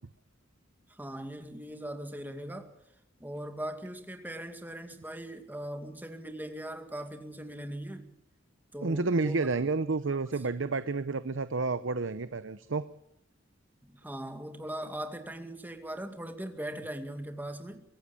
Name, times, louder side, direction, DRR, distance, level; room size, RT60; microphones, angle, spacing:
voice 1, 0.9-2.7 3.2-8.1 8.7-9.5 13.8-17.8, right 1 dB, 10° right, 6 dB, 2.2 m, -40 dB
voice 2, 8.8-12.9, right 3 dB, 70° right, 13 dB, 0.8 m, -30 dB
24.0 x 16.5 x 7.1 m, 0.73 s
head